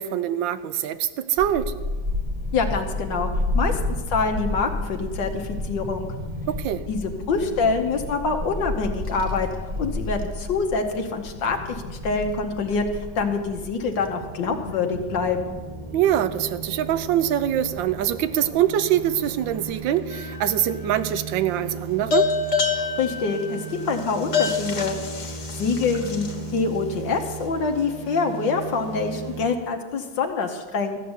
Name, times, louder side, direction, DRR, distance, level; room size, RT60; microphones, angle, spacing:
voice 1, 0.0-1.7 6.5-6.8 15.9-22.3, right 11 dB, 75° right, 13 dB, 1.4 m, -24 dB
Child speech kid speaking / Wind, 1.4-19.7, left 1 dB, 25° right, 1.3 m, -32 dB
voice 2, 2.5-3.8 4.1-6.1 6.9-9.5 9.8-15.6 22.7-31.0, left 4 dB, 70° left, 4 dB, 1.6 m, -26 dB
sound 1, 14.3-29.5, right 4 dB, 50° right, 0.4 m, -37 dB
sound 2, 20.1-20.7 22.1-26.6, left 5 dB, 40° left, 1.7 m, -26 dB
14.0 x 6.7 x 9.5 m, 1.4 s
omnidirectional pair, 2.1 m